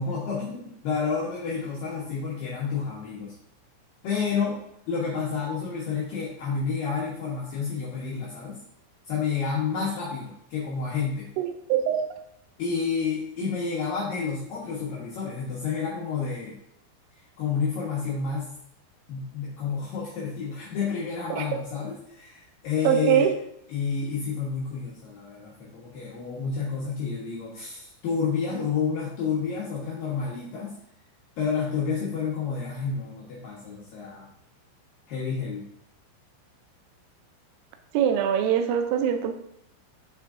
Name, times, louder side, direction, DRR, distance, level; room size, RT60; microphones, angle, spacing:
voice 1, 0.0-3.3 4.0-4.6 4.9-8.6 9.1-11.3 12.6-16.6 17.4-18.5 19.1-23.3 23.7-30.8 31.4-34.3 35.1-35.7, left 5 dB, 85° left, -7 dB, 1.9 m, -30 dB
voice 2, 11.4-12.1 21.3-21.4 22.8-23.4 37.9-39.3, right 9 dB, 85° right, 6 dB, 3.2 m, -23 dB
7.4 x 4.6 x 3.6 m, 0.75 s
omnidirectional pair, 6.0 m